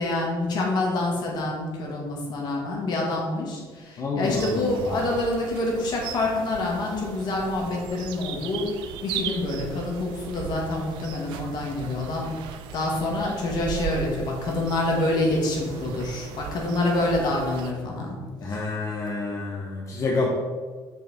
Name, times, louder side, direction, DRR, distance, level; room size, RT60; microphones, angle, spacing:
voice 1, 0.0-8.7 9.0-12.3 12.7-18.2, left 2 dB, 60° left, -1 dB, 2.0 m, -27 dB
voice 2, 4.0-5.0 18.4-20.4, left 3 dB, 40° left, -2 dB, 1.0 m, -28 dB
sound 1, 4.2-17.7, right 8 dB, 90° right, 0.6 m, -38 dB
6.3 x 5.6 x 4.4 m, 1.5 s
cardioid pair, 130°, 8 cm